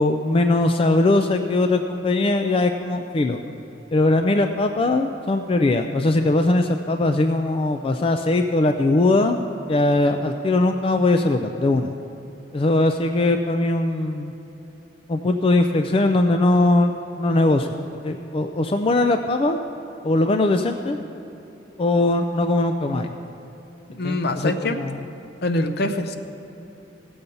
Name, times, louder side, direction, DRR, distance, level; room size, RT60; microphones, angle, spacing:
voice 1, 0.0-3.4 3.9-9.4 9.7-11.9 12.5-14.3 15.1-16.9 17.2-17.7 18.0-19.6 20.0-21.0 21.8-23.1 24.0-25.0, left 2 dB, 30° left, 6 dB, 0.4 m, -20 dB
voice 2, 23.9-24.8 25.4-26.2, left 2 dB, 60° left, 7 dB, 0.7 m, -24 dB
17.0 x 7.1 x 5.3 m, 3.0 s
head